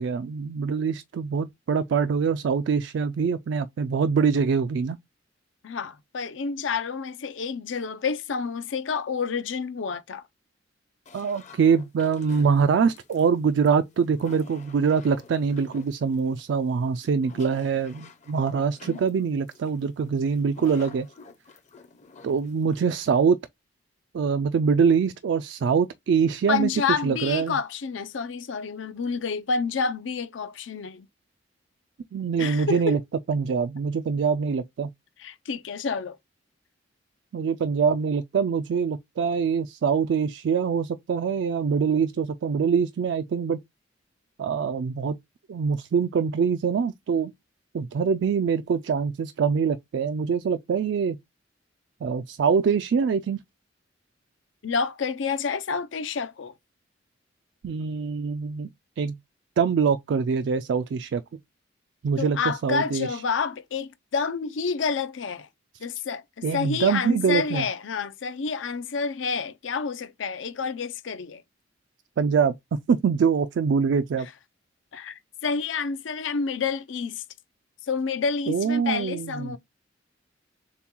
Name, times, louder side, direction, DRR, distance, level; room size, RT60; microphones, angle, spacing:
voice 1, 0.0-5.0 11.1-21.1 22.2-23.4 24.1-26.7 27.0-27.6 32.1-33.0 33.3-34.9 37.3-43.6 44.4-45.2 45.5-47.3 47.7-51.2 52.0-53.4 57.6-58.7 59.0-59.2 59.6-61.2 62.0-63.2 66.4-67.7 72.2-74.3 78.5-79.6, right 6 dB, 70° right, 0.3 m, -24 dB
voice 2, 5.6-10.2 26.5-31.1 32.4-33.0 35.2-36.2 54.6-56.5 62.2-65.5 65.8-71.4 74.9-77.2 77.9-79.6, left 5 dB, 85° left, 0.5 m, -29 dB
sound 1, 11.1-23.2, left 4 dB, 40° left, 0.6 m, -49 dB
6.8 x 2.3 x 2.9 m
head